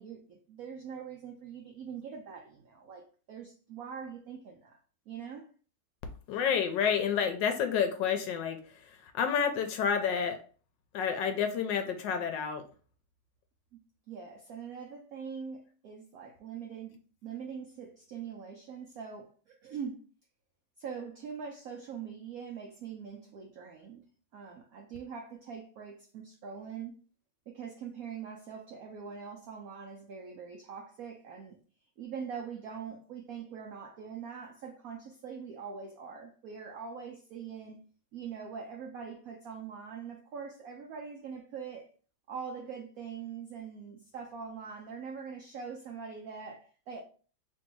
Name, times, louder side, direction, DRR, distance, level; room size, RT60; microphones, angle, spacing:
voice 1, 0.0-4.8 5.1-5.5 7.0-7.1 14.1-20.0 20.8-24.0 24.3-26.9 27.5-31.6 32.0-37.8 38.1-41.9 42.3-47.0, right 6 dB, 85° right, 0.7 m, -43 dB
voice 2, 6.3-8.6 9.0-10.4 10.9-12.6, left 7 dB, 75° left, 1.1 m, -29 dB
3.1 x 2.6 x 4.4 m
omnidirectional pair, 2.2 m